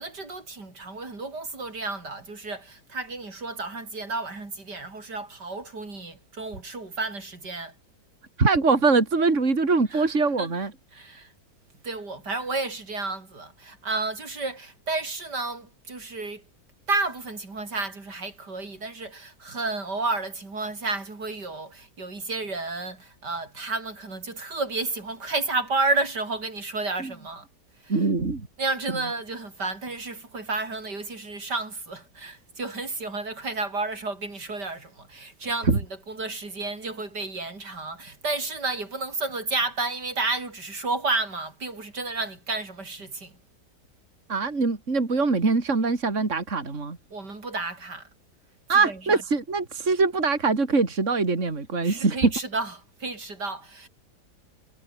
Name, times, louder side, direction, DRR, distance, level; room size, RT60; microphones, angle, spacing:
voice 1, 0.0-7.7 9.9-10.6 10.9-11.3 11.8-16.4 16.9-27.5 27.8-28.1 28.6-43.4 47.1-48.1 48.7-49.3 51.8-53.9, right 3 dB, 80° right, 5.4 m, -31 dB
voice 2, 8.4-10.7 27.0-27.1 27.9-28.5 35.7-35.8 44.3-47.0 48.7-52.3, right 4 dB, 45° right, 3.4 m, -23 dB
omnidirectional pair, 1.8 m